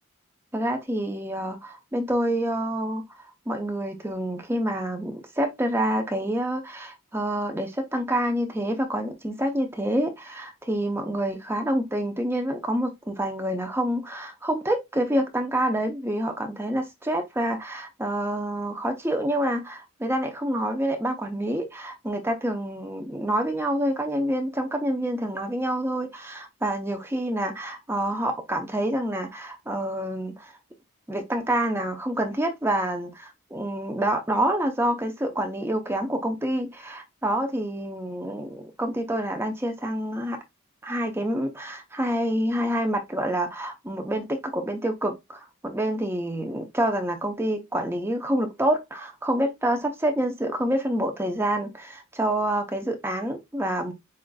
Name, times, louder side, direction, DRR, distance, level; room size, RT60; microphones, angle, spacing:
voice 1, 0.5-30.5 31.1-40.4 40.8-53.9, right 1 dB, 10° right, 0.7 m, -27 dB
7.6 x 2.5 x 2.3 m
head